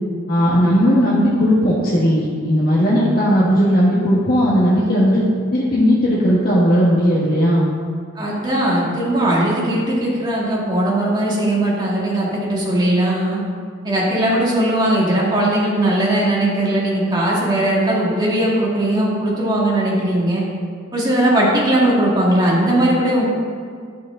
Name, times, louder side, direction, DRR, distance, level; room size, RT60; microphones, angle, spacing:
voice 1, 0.3-5.3 5.5-7.7, equal, 50° left, -7 dB, 1.4 m, -16 dB
voice 2, 8.2-13.4 13.8-20.4 20.9-23.3, right 1 dB, 20° right, -5 dB, 2.1 m, -18 dB
12.0 x 7.1 x 3.8 m, 2.1 s
head